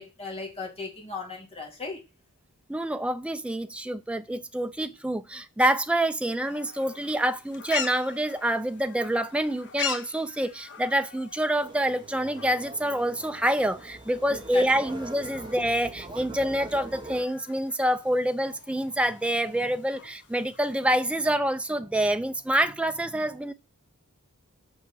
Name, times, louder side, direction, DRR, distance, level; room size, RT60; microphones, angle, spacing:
voice 1, 0.0-2.0 14.3-14.6, left 4 dB, 30° left, 3.2 m, -36 dB
voice 2, 2.7-23.5, right 1 dB, 5° right, 0.6 m, -27 dB
sound 1, 6.4-21.2, left 7 dB, 55° left, 1.3 m, -42 dB
sound 2, 11.6-17.2, right 2 dB, 20° right, 1.1 m, -43 dB
6.4 x 6.0 x 7.0 m
head